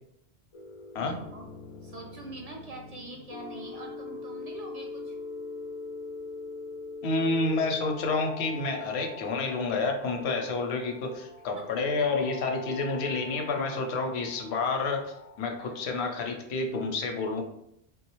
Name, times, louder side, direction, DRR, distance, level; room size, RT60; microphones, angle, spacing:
sound 1, 0.5-16.1, left 3 dB, 60° left, 0.3 m, -43 dB
voice 1, 1.8-5.2 11.6-11.7 15.6-15.8, right 2 dB, 55° right, 0 dB, 0.4 m, -44 dB
voice 2, 7.0-17.4, left 3 dB, 85° left, 3 dB, 0.9 m, -29 dB
3.4 x 2.3 x 3.0 m, 0.76 s
omnidirectional pair, 1.1 m